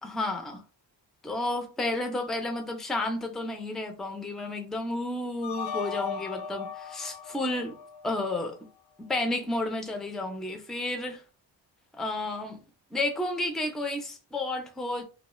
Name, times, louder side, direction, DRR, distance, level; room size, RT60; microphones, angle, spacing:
voice 1, 0.0-0.6 1.2-7.8 8.0-8.5 9.0-11.2 12.0-12.6 12.9-15.0, left 2 dB, ahead, 0.4 m, -31 dB
sound 1, 5.4-8.5, left 6 dB, 60° left, 0.7 m, -37 dB
2.3 x 2.3 x 3.0 m
cardioid pair, 110°, 46 cm